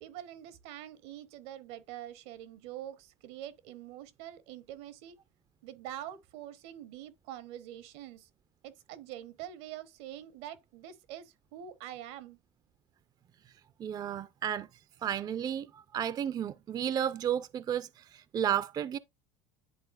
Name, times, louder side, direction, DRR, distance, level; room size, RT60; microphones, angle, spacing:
voice 1, 0.0-5.2 5.6-8.3 8.6-12.4, right 12 dB, 75° right, 0.9 m, -45 dB
voice 2, 13.8-14.7 15.0-19.0, right 9 dB, 30° right, 0.4 m, -32 dB
11.0 x 3.8 x 2.4 m
supercardioid pair, 110°, 14 cm